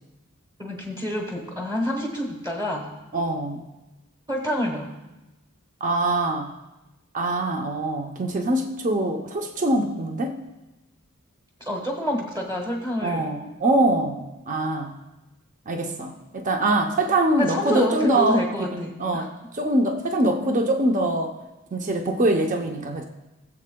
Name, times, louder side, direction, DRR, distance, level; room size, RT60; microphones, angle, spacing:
voice 1, 0.6-2.9 4.3-5.0 11.6-13.3 17.4-19.3, equal, 20° right, 0 dB, 1.1 m, -28 dB
voice 2, 3.1-3.6 5.8-6.5 7.1-10.4 13.0-15.0 15.7-18.4 18.7-19.3 19.6-21.4 21.7-23.0, right 1 dB, 35° right, 3 dB, 0.7 m, -23 dB
19.5 x 7.5 x 2.2 m, 1.0 s
head